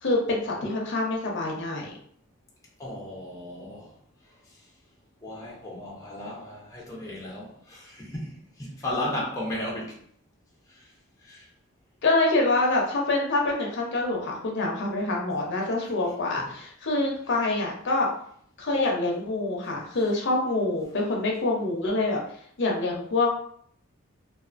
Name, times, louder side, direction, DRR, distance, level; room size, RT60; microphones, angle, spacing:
voice 1, 0.0-1.9 12.0-18.1 18.6-22.2 22.6-23.4, left 2 dB, 60° left, 0.6 m, -26 dB
voice 2, 2.8-3.9 5.2-10.0 10.7-10.9 11.2-11.5 15.6-15.9 16.4-16.5 17.3-17.4, left 1 dB, 15° left, 0.5 m, -35 dB
2.4 x 2.4 x 2.4 m
head